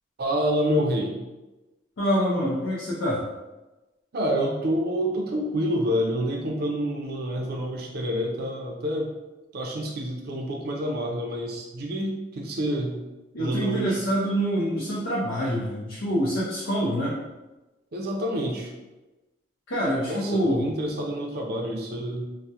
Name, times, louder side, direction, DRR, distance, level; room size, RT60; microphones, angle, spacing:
voice 1, 0.2-1.2 4.1-9.1 9.5-13.0 13.4-13.9 17.9-18.7 20.1-22.3, equal, 55° right, 0 dB, 0.4 m, -28 dB
voice 2, 2.0-3.2 13.3-17.2 19.7-20.7, equal, 80° left, -6 dB, 0.5 m, -26 dB
2.2 x 2.0 x 2.7 m, 1.1 s
head